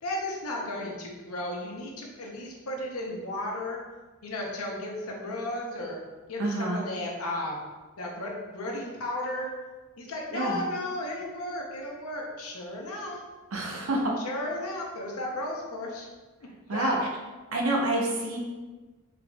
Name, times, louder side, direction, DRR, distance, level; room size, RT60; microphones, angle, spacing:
voice 1, 0.0-3.8 4.2-6.0 6.3-7.6 8.0-9.5 10.0-13.2 14.2-16.1 16.7-17.0, left 1 dB, 90° left, -1 dB, 0.8 m, -34 dB
voice 2, 6.4-6.8 10.3-10.6 13.5-14.1 16.7-17.0 17.5-18.4, right 2 dB, 75° right, -1 dB, 0.7 m, -27 dB
3.9 x 3.4 x 2.3 m, 1.3 s
head